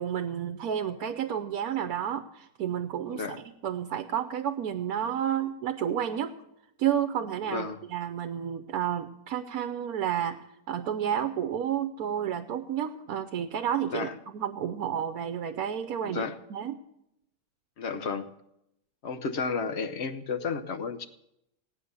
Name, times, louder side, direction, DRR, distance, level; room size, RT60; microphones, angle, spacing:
voice 1, 0.0-6.3 6.8-10.4 10.7-16.8, right 9 dB, 75° right, 9 dB, 1.2 m, -31 dB
voice 2, 7.5-7.8 13.9-14.1 16.0-16.4 17.8-18.3 19.0-21.1, left 5 dB, 55° left, 10 dB, 0.9 m, -32 dB
16.5 x 9.5 x 6.8 m, 0.82 s
omnidirectional pair, 1.6 m